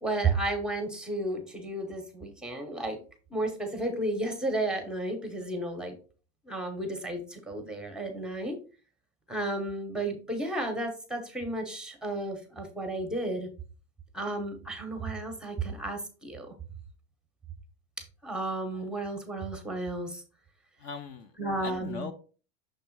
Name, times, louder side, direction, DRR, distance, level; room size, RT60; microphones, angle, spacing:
voice 1, 0.0-3.0 3.3-5.9 6.4-8.6 9.3-13.5 14.1-16.5 18.2-20.2 21.4-22.1, right 2 dB, ahead, 5 dB, 0.9 m, -33 dB
voice 2, 20.8-22.1, left 5 dB, 45° left, 8 dB, 0.7 m, -40 dB
6.4 x 3.3 x 4.6 m, 0.37 s
supercardioid pair, 150°, 33 cm